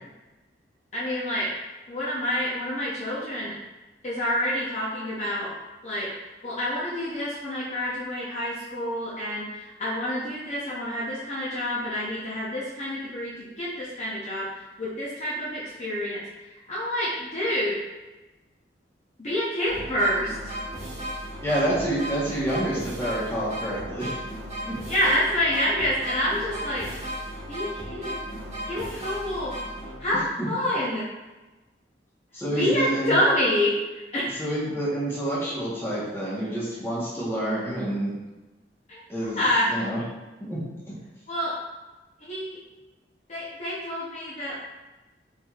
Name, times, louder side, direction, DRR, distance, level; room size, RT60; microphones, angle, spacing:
voice 1, 0.9-1.5 1.9-3.6 4.0-5.5 5.8-6.1 6.4-17.8 19.2-20.5 24.9-26.9 27.5-28.2 28.7-29.5 30.0-31.1 32.5-34.4 38.9-39.0 39.3-39.7 41.3-41.5 42.3-42.6 43.3-44.6, left 1 dB, 40° left, -7 dB, 0.7 m, -27 dB
sound 1, 19.7-30.3, equal, 40° right, 1.0 m, -35 dB
voice 2, 21.4-24.2 24.6-24.8 30.4-30.5 32.3-33.2 34.4-38.1 39.1-39.4 39.7-40.0 40.4-40.6, right 1 dB, 15° left, -8 dB, 1.1 m, -28 dB
4.4 x 3.5 x 2.3 m, 1.1 s
head